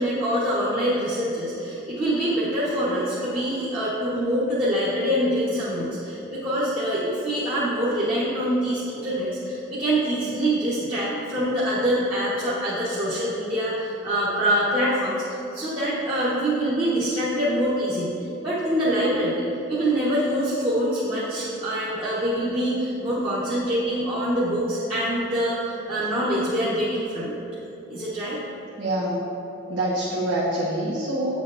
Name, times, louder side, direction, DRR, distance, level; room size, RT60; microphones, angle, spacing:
voice 1, 0.0-18.1 18.4-27.4 27.9-28.4, equal, 25° right, -12 dB, 1.1 m, -25 dB
voice 2, 28.8-29.2 29.7-31.4, right 1 dB, 75° right, -7 dB, 1.2 m, -25 dB
9.1 x 7.0 x 2.5 m, 2.9 s
head